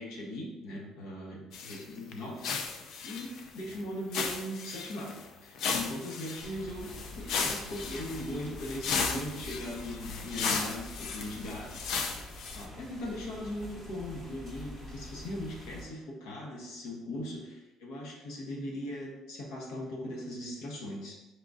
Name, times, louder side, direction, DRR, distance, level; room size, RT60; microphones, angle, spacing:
voice 1, 0.0-2.5 3.0-5.1 5.4-11.9 12.5-21.2, left 1 dB, 85° left, -2 dB, 1.2 m, -39 dB
sound 1, 1.5-1.8 2.1-2.2 2.4-3.8 4.1-5.2 5.6-12.6, left 5 dB, 50° left, 0.4 m, -35 dB
sound 2, 6.4-15.8, left 1 dB, 35° left, 1.2 m, -47 dB
4.8 x 2.6 x 3.6 m, 1.0 s
cardioid pair, 180°, 0 cm